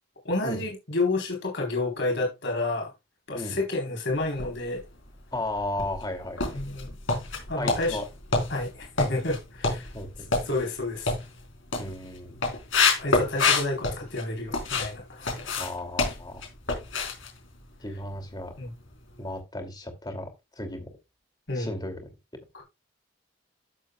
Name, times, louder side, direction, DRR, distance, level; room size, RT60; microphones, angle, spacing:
voice 1, 0.2-2.9 3.3-4.8 6.5-6.9 7.5-8.0 8.5-9.9 10.5-11.1 13.0-15.3 18.6-18.7 21.5-21.7 22.5-22.6, left 2 dB, 65° left, 0 dB, 4.1 m, -30 dB
sound 1, 4.2-5.0 5.4-14.9 15.2-18.4 18.6-18.9 19.3-19.4, left 4 dB, 85° left, 4.3 m, -28 dB
voice 2, 5.3-6.6 7.5-8.0 9.9-10.3 11.8-12.4 15.6-16.4 17.8-18.5 19.2-20.9 21.5-22.0, left 1 dB, 20° left, 6 dB, 2.7 m, -35 dB
13.0 x 7.5 x 2.4 m, 0.24 s
head